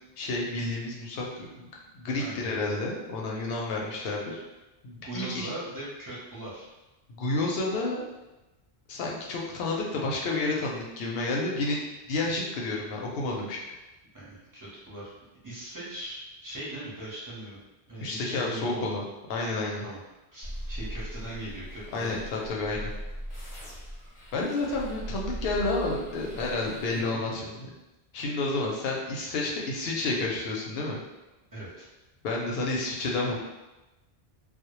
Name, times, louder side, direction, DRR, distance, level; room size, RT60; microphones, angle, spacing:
voice 1, 0.2-1.7 1.9-4.4 4.8-5.5 7.1-8.0 8.9-11.8 12.1-13.6 18.0-19.0 19.3-19.9 21.9-22.9 24.3-27.5 28.1-31.0 32.2-33.4, left 2 dB, 70° left, -2 dB, 0.8 m, -30 dB
voice 2, 2.2-2.5 5.0-6.6 14.1-15.1 15.4-17.6 17.9-19.0 19.8-20.0 20.3-22.2 26.9-27.0 31.5-31.9, right 1 dB, 25° right, -8 dB, 0.6 m, -40 dB
sound 1, 20.4-27.0, equal, 35° left, 0.6 m, -39 dB
2.1 x 2.0 x 2.9 m, 1.0 s
omnidirectional pair, 1.1 m